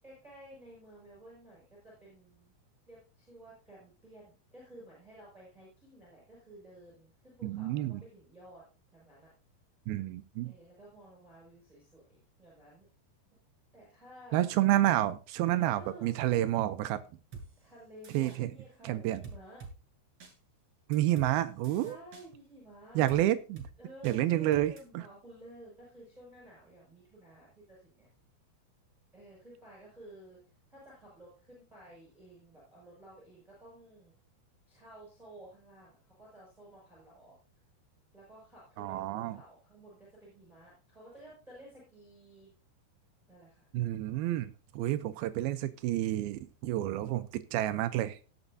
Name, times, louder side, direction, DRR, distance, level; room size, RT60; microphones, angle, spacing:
voice 1, 0.0-2.5 2.9-9.3 10.4-12.9 13.7-14.4 15.6-16.1 17.6-19.6 21.7-23.0 23.8-28.1 29.1-30.4 30.7-34.1 34.7-37.4 38.1-42.5 43.3-43.7, right 1 dB, ahead, -4 dB, 6.1 m, -53 dB
voice 2, 7.4-8.0 9.9-10.5 14.3-17.0 18.1-18.5 18.8-19.2 20.9-22.0 23.0-23.6 24.0-25.0 38.8-39.4 43.7-48.2, right 14 dB, 85° right, 11 dB, 2.2 m, -29 dB
sound 1, 17.3-17.5 18.0-18.4 19.2-19.7 20.2-20.3 20.9-21.3 21.6-22.3 23.1-23.2 23.6-23.7 24.0-24.2 24.5-24.8, right 4 dB, 35° right, 3.2 m, -46 dB
19.0 x 7.1 x 2.7 m, 0.35 s
omnidirectional pair, 5.1 m